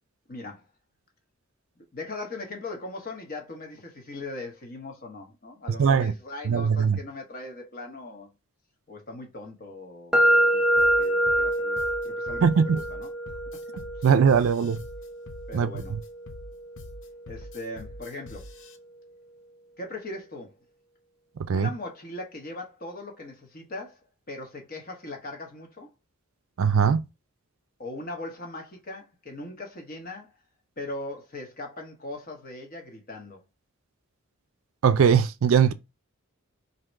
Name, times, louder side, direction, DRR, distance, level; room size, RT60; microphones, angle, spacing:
voice 1, 0.3-0.6 1.8-8.3 8.9-11.8 12.0-13.1 13.5-13.6 13.9-14.1 14.3-14.5 15.5-16.0 17.3-18.5 19.8-20.5 21.5-24.0 24.3-25.9 27.8-30.3 30.8-33.4, left 2 dB, 40° left, 1.1 m, -39 dB
voice 2, 5.8-6.1 6.5-7.0 12.4-12.8 14.0-14.8 15.5-15.7 21.5-21.7 26.6-27.0 34.8-35.7, right 6 dB, 65° right, 0.4 m, -20 dB
sound 1, 10.1-18.0, right 1 dB, 5° right, 0.5 m, -27 dB
sound 2, 10.8-18.8, left 2 dB, 55° left, 0.6 m, -44 dB
3.7 x 2.8 x 4.4 m
head